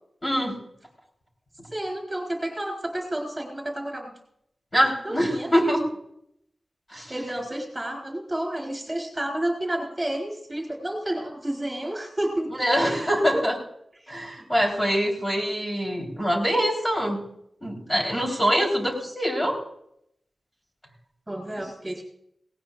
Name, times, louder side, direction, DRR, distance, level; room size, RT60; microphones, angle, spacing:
voice 1, 0.2-0.6 4.7-5.8 6.9-7.1 12.6-13.5 14.1-17.2 17.6-19.6, equal, 20° left, 0 dB, 3.9 m, -24 dB
voice 2, 1.7-4.1 5.0-5.5 7.1-12.5 12.7-13.1 13.3-13.4 14.0-14.1 21.3-22.0, right 1 dB, 15° right, 2 dB, 3.9 m, -30 dB
18.0 x 18.0 x 2.5 m, 0.73 s
wide cardioid pair, 110°, 0 cm